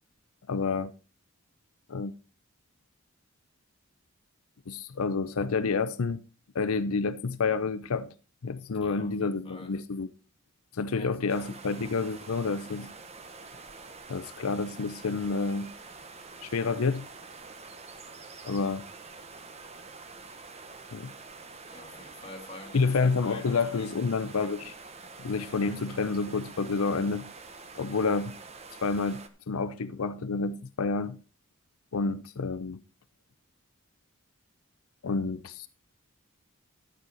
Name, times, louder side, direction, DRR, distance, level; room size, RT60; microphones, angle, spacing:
voice 1, 0.5-0.9 1.9-2.1 4.7-6.2 6.5-8.1 8.4-10.1 10.7-12.9 14.1-15.7 16.4-17.1 18.4-18.9 20.9-21.1 22.7-24.7 25.2-27.3 27.8-28.4 28.8-31.2 31.9-32.8 35.0-35.7, left 4 dB, 85° left, 0.6 m, -29 dB
voice 2, 8.7-9.7 10.8-11.6 21.7-23.9, left 2 dB, 25° left, 1.8 m, -48 dB
sound 1, 11.3-29.3, right 4 dB, 30° right, 1.0 m, -47 dB
11.0 x 9.0 x 4.0 m
head